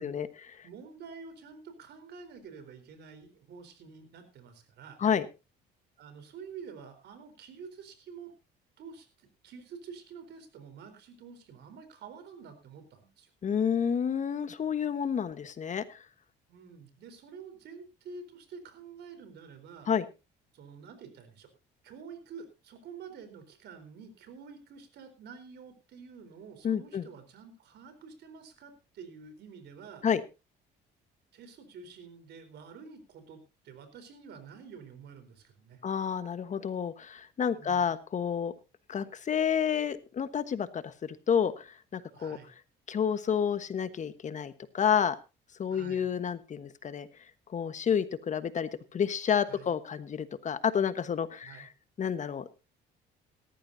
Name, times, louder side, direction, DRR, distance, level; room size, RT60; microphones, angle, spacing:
voice 1, 0.0-5.0 6.0-8.3 8.8-13.3 16.5-19.9 20.5-21.5 21.8-30.1 31.3-35.8 37.6-37.9 42.1-42.5 45.7-46.1 49.5-49.7 51.4-51.7, right 5 dB, 65° right, 9 dB, 4.2 m, -48 dB
voice 2, 13.4-15.8 19.9-20.0 26.6-27.0 30.0-30.2 35.8-38.5 38.9-41.7 41.9-42.4 42.9-45.2 45.6-47.1 47.5-51.7 52.0-52.6, left 7 dB, 40° left, 12 dB, 1.3 m, -30 dB
18.0 x 14.0 x 2.8 m, 0.29 s
cardioid pair, 95°, 19 cm